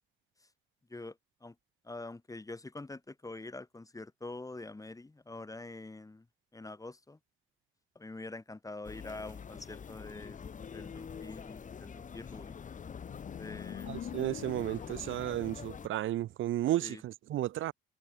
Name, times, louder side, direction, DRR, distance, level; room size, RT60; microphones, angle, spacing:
voice 1, 1.8-6.2 6.5-7.2 7.9-10.5 10.7-12.6 13.3-13.9 16.8-17.0, left 2 dB, 15° left, 2.6 m, -45 dB
sound 1, 8.8-15.9, left 6 dB, 40° left, 1.5 m, -45 dB
Motorcycle, 12.4-15.6, left 10 dB, 65° left, 7.1 m, -46 dB
voice 2, 13.9-17.7, right 13 dB, 80° right, 2.8 m, -33 dB
cardioid pair, 90°, 20 cm